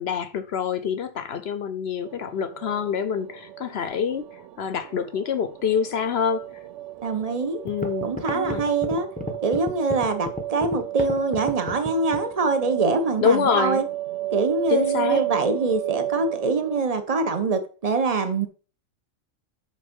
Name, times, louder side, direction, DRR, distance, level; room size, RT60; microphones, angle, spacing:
voice 1, 0.0-6.4 7.6-8.6 13.2-13.8 14.7-15.2, left 7 dB, 60° left, 0.9 m, -26 dB
sound 1, 2.1-16.8, right 15 dB, 75° right, 0.9 m, -33 dB
voice 2, 7.0-7.6 8.0-9.1 9.4-13.8 14.3-18.5, right 3 dB, 30° right, 1.0 m, -24 dB
sound 2, 7.2-7.3 7.7-12.3, left 1 dB, 5° left, 1.0 m, -32 dB
6.6 x 6.0 x 5.3 m
omnidirectional pair, 1.3 m